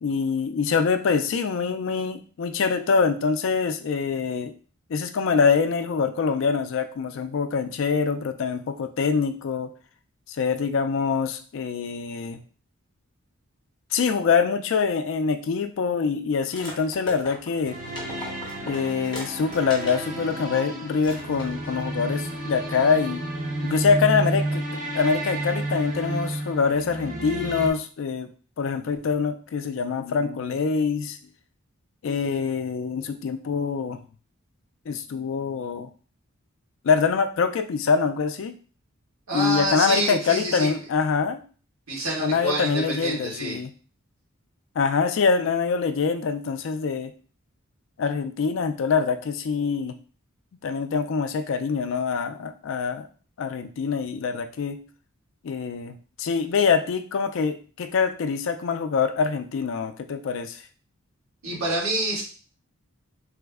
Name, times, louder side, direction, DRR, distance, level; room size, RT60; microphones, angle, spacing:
voice 1, 0.0-4.5 4.9-9.7 10.3-12.4 13.9-17.8 18.6-23.2 23.6-28.3 28.6-31.2 32.0-34.0 34.9-35.9 36.8-38.6 39.3-41.4 42.2-43.7 44.8-47.1 48.0-50.0 50.6-53.1 53.4-54.8 55.4-60.6, left 5 dB, 60° left, 9 dB, 0.3 m, -24 dB
sound 1, 16.5-20.1 20.5-20.6 21.0-21.8, left 2 dB, 20° left, 0.8 m, -40 dB
sound 2, 17.7-27.7, right 1 dB, 35° right, 0.5 m, -31 dB
voice 2, 39.3-40.7 41.9-43.6 61.4-62.2, right 1 dB, 80° right, -4 dB, 1.6 m, -27 dB
3.2 x 2.0 x 3.4 m, 0.39 s
head